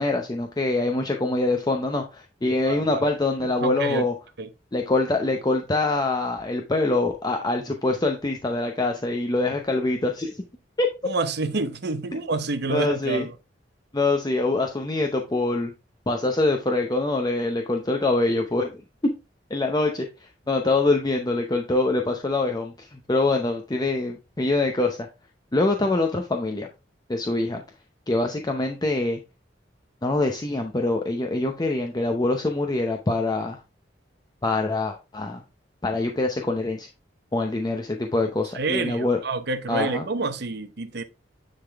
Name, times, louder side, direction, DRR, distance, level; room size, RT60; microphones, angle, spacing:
voice 1, 0.0-4.1 4.7-10.4 10.8-10.9 12.7-13.3 13.9-15.7 16.1-18.7 19.0-19.1 19.5-25.1 25.5-26.7 27.1-27.6 28.1-29.2 30.0-33.6 34.4-35.4 35.8-36.9 37.3-39.2 39.7-40.1, left 2 dB, 20° left, 0.7 m, -24 dB
voice 2, 2.6-3.0 3.6-4.0 4.4-4.5 11.0-13.3 38.5-41.0, right 3 dB, 65° right, 0.8 m, -28 dB
10.0 x 3.8 x 3.4 m
head